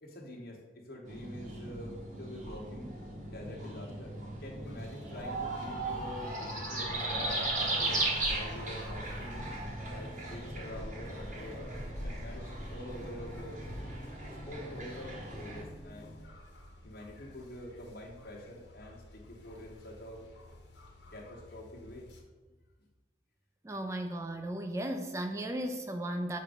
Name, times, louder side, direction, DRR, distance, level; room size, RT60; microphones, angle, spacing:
voice 1, 0.0-2.9 3.2-4.1 4.4-7.4 7.8-9.5 9.9-11.6 12.0-13.6 14.2-16.2 16.8-20.2 21.1-22.1, left 1 dB, 55° left, -3 dB, 1.2 m, -46 dB
sound 1, 1.1-15.6, right 2 dB, 45° right, 1.1 m, -37 dB
sound 2, 4.6-22.2, equal, 75° left, 1.1 m, -49 dB
sound 3, 9.1-16.2, equal, 35° left, 0.9 m, -50 dB
voice 2, 23.6-26.4, right 1 dB, 15° right, 6 dB, 0.3 m, -35 dB
7.4 x 2.6 x 5.0 m, 1.2 s
head